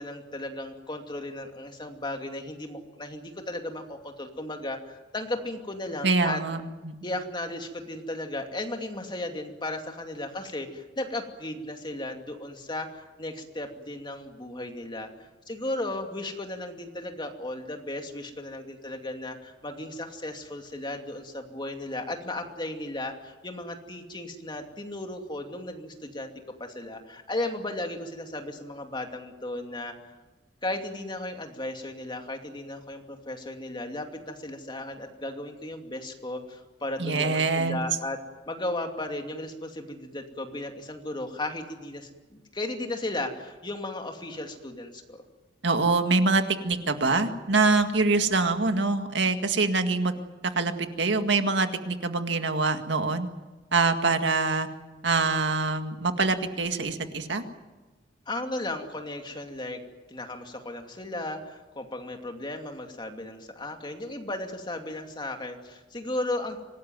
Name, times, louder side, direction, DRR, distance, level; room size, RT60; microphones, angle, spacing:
voice 1, 0.0-6.4 7.0-15.1 15.5-26.3 26.6-29.9 30.6-38.2 38.5-45.2 58.3-59.8 60.1-66.6, left 1 dB, 25° left, 4 dB, 2.6 m, -35 dB
voice 2, 6.0-6.6 6.8-7.0 37.0-37.8 45.6-50.1 50.6-53.3 53.7-54.7 55.0-57.4, right 3 dB, 75° right, 7 dB, 1.9 m, -24 dB
25.5 x 19.0 x 9.5 m, 1.2 s
head